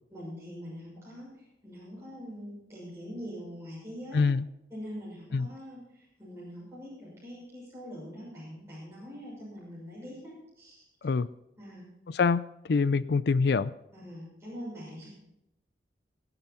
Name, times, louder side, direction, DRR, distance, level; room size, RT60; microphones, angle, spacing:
voice 1, 0.1-4.2 4.7-10.8 11.6-11.9 13.9-15.1, equal, 15° right, -8 dB, 6.3 m, -43 dB
voice 2, 4.1-4.4 5.3-5.5 11.0-11.3 12.1-13.7, left 4 dB, 65° left, 16 dB, 0.4 m, -25 dB
23.0 x 8.0 x 4.3 m, 0.85 s
head